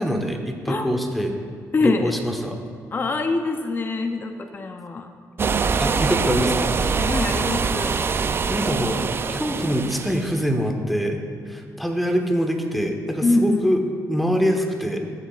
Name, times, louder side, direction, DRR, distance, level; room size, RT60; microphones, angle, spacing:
voice 1, 0.0-1.3 1.8-2.6 5.8-6.7 8.1-8.2 8.5-9.0 9.3-11.2 11.5-13.8 14.1-15.0, equal, ahead, 3 dB, 1.0 m, -24 dB
voice 2, 1.7-2.1 2.9-5.1 7.0-8.0 13.2-13.7, left 3 dB, 30° left, 6 dB, 0.5 m, -24 dB
sound 1, 5.4-10.4, right 5 dB, 35° right, 0.4 m, -24 dB
14.5 x 7.4 x 2.4 m, 2.3 s
cardioid pair, 85°, 7 cm